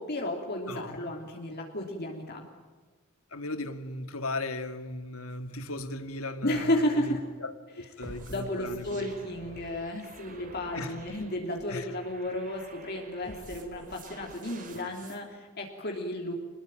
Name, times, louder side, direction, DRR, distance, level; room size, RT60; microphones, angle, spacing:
voice 1, 0.0-2.4 6.4-7.2 8.3-16.3, left 1 dB, 50° left, 1 dB, 3.2 m, -33 dB
voice 2, 3.3-9.1 10.7-10.9 11.7-11.9, left 2 dB, 85° left, 9 dB, 2.1 m, -37 dB
sound 1, 8.0-15.2, right 2 dB, 40° right, 3.3 m, -48 dB
26.0 x 21.0 x 9.1 m, 1.4 s
head